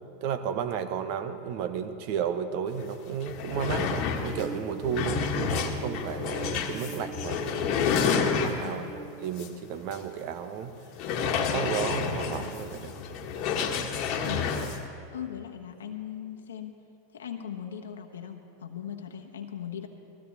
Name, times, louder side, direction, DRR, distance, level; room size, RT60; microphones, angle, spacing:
voice 1, 0.0-7.8 8.3-10.8 11.4-13.0, right 7 dB, 60° right, 9 dB, 1.1 m, -33 dB
sound 1, 2.8-2.9 3.2-8.9 9.4-9.5 9.9-10.0 10.9-14.8, left 6 dB, 50° left, 1.4 m, -29 dB
sound 2, 4.3-9.4, right 4 dB, 25° right, 1.5 m, -41 dB
voice 2, 8.6-8.9 14.2-14.6 15.1-16.8 17.1-19.9, left 9 dB, 85° left, 4 dB, 1.2 m, -39 dB
19.5 x 15.0 x 4.2 m, 2.6 s
hypercardioid pair, 100°, 0 cm